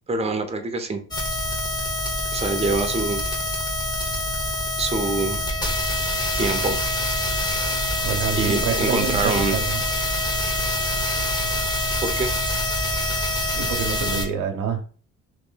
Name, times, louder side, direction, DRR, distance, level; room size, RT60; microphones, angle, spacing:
voice 1, 0.1-1.0 2.3-3.2 4.8-5.4 6.3-6.8 8.4-9.6 12.0-12.3, right 3 dB, 20° right, 5 dB, 0.7 m, -25 dB
sound 1, 1.1-14.3, left 1 dB, 15° left, 0.9 m, -25 dB
voice 2, 8.0-9.8 13.5-14.9, right 7 dB, 80° right, 4 dB, 0.8 m, -27 dB
3.0 x 3.0 x 3.9 m, 0.40 s
cardioid pair, 110°, 30 cm